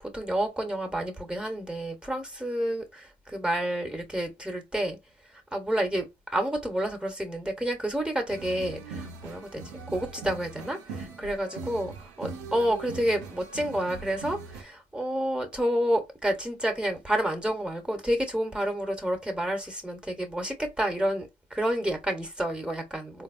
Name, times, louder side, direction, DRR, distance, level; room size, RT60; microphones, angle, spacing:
voice 1, 0.1-5.0 5.5-11.9 12.2-23.2, right 1 dB, 5° right, 1.2 m, -29 dB
sound 1, 8.3-14.6, right 4 dB, 85° right, 0.8 m, -41 dB
3.8 x 2.7 x 2.6 m
supercardioid pair, 55°, 20 cm